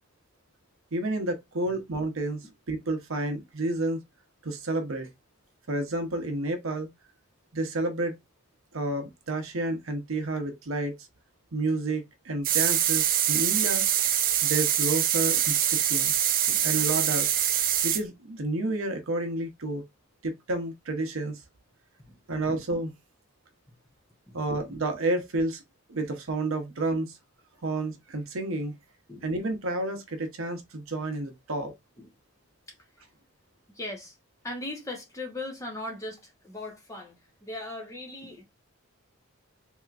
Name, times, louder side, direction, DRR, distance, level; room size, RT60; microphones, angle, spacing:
voice 1, 0.9-4.0 4.4-5.1 5.7-6.9 7.5-8.2 8.7-10.9 11.5-13.9 14.4-16.1 16.6-17.3 17.8-19.8 20.2-21.4 22.3-22.9 24.3-25.6 25.9-27.2 27.6-28.7 29.2-31.7, right 2 dB, 70° right, 0.8 m, -30 dB
sound 1, 12.4-18.0, right 10 dB, 40° right, 0.3 m, -24 dB
voice 2, 33.8-34.1 34.4-38.4, left 2 dB, 15° left, 0.8 m, -38 dB
3.3 x 2.8 x 2.4 m
head